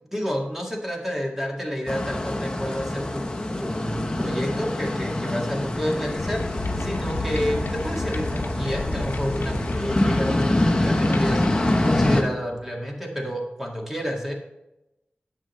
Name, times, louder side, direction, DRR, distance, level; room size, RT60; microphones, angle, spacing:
voice 1, 0.1-3.3 3.6-14.3, equal, 10° right, 0 dB, 1.9 m, -29 dB
sound 1, 1.9-12.2, left 1 dB, 25° left, 1.0 m, -25 dB
sound 2, 6.2-12.7, left 2 dB, 70° left, 0.9 m, -34 dB
10.0 x 7.8 x 3.2 m, 0.92 s
wide cardioid pair, 85°, 4 cm